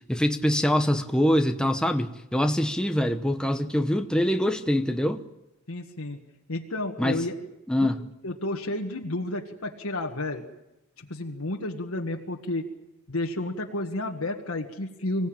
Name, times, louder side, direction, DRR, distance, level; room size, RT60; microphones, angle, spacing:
voice 1, 0.1-5.2 7.0-7.2 7.7-8.0, equal, 5° left, 0.8 m, -24 dB
voice 2, 5.7-6.2 6.5-7.4 7.8-7.9 8.2-10.4 11.0-12.6 13.1-15.3, left 2 dB, 70° left, 1.7 m, -31 dB
25.0 x 16.5 x 9.0 m
head